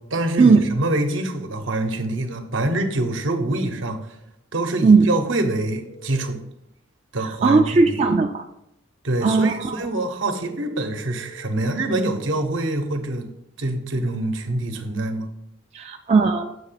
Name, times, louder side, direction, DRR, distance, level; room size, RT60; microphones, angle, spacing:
voice 1, 0.1-4.0 4.5-6.4 7.1-8.0 9.0-13.3 13.6-15.3, right 2 dB, 75° right, 5 dB, 0.8 m, -25 dB
sound 1, 5.7-6.3 10.2-12.1, equal, 90° left, 2.6 m, -45 dB
voice 2, 7.2-8.4 9.2-9.8 15.7-16.5, right 4 dB, 35° right, 3 dB, 0.3 m, -17 dB
7.6 x 2.9 x 5.6 m, 0.81 s
head